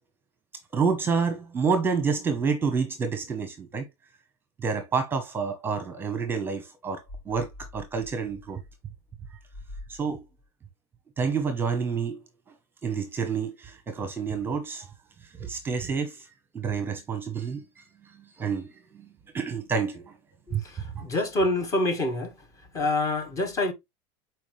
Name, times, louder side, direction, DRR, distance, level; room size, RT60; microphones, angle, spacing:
voice 1, 0.7-3.8 4.6-8.6 9.9-10.2 11.2-12.2 12.8-14.9 15.4-16.3 16.5-17.8 18.4-18.7 18.9-19.0 19.3-20.0 20.5-20.6 20.9-21.0, right 5 dB, 15° right, 1.0 m, -28 dB
sound 1, 7.0-10.5, left 2 dB, 70° left, 2.4 m, -46 dB
voice 2, 20.5-22.3 22.7-23.7, left 2 dB, 25° left, 1.5 m, -26 dB
7.1 x 4.6 x 3.2 m
supercardioid pair, 155°, 14 cm